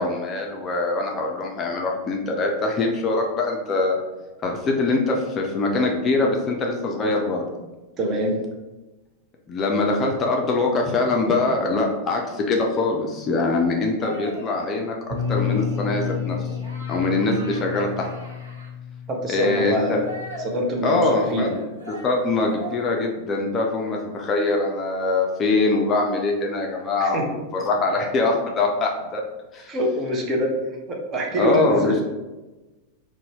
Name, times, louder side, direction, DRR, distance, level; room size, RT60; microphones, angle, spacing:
voice 1, 0.0-4.0 4.4-7.5 9.5-15.0 15.3-16.4 16.9-18.1 19.3-20.0 20.8-21.5 21.9-29.2 29.5-29.7 31.4-31.9, left 3 dB, 25° left, 1 dB, 0.4 m, -23 dB
voice 2, 8.0-8.4 19.1-20.0 20.4-21.6 27.0-27.2 29.7-30.5 30.9-32.0, equal, 30° right, 0 dB, 0.6 m, -25 dB
sound 1, 14.0-14.7 15.1-18.7 19.3-22.7, right 1 dB, 85° right, 0.6 m, -40 dB
Bass guitar, 15.1-21.3, left 7 dB, 60° right, 1.1 m, -31 dB
2.6 x 2.1 x 2.8 m, 1.1 s
figure-of-eight pair, 90°, 0 cm